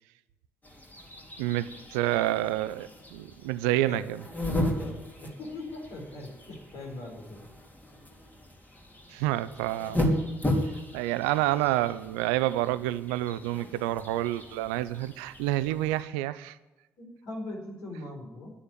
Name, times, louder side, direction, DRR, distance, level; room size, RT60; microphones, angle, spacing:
sound 1, 0.6-16.0, left 1 dB, 25° left, 3.5 m, -35 dB
voice 1, 1.4-4.2 9.1-10.0 10.9-16.6, right 15 dB, 75° right, 16 dB, 0.5 m, -28 dB
voice 2, 4.7-7.4 17.0-18.5, left 2 dB, 65° left, 0 dB, 4.6 m, -40 dB
11.0 x 9.9 x 8.9 m, 1.0 s
hypercardioid pair, 45°, 7 cm